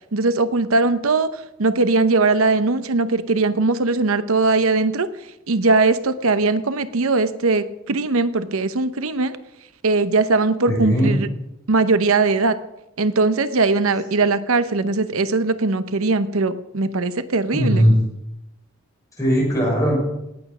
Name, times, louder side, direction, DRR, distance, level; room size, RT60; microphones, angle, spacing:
voice 1, 0.1-5.1 5.5-9.4 9.8-11.3 11.7-12.5 13.0-17.9, right 3 dB, 70° right, 12 dB, 0.8 m, -20 dB
voice 2, 10.7-11.2 17.5-18.0 19.2-20.0, equal, 15° left, -4 dB, 6.9 m, -18 dB
18.0 x 8.7 x 6.1 m, 0.88 s
head